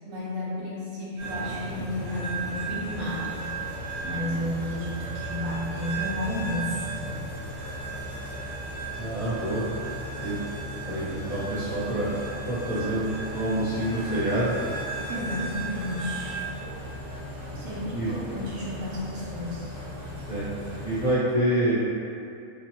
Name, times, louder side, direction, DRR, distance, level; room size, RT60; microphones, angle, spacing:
voice 1, 0.0-3.5 4.0-7.1 15.1-16.4 17.5-19.7, left 1 dB, 80° right, -7 dB, 1.1 m, -32 dB
sound 1, 1.2-21.1, right 2 dB, 60° right, 1.2 m, -35 dB
voice 2, 9.0-9.7 10.2-10.4 10.8-12.1 12.5-14.5 17.5-17.7 17.9-18.1 20.0-20.5 20.8-21.8, right 1 dB, 40° left, -12 dB, 0.6 m, -27 dB
2.9 x 2.1 x 2.9 m, 2.5 s
omnidirectional pair, 1.4 m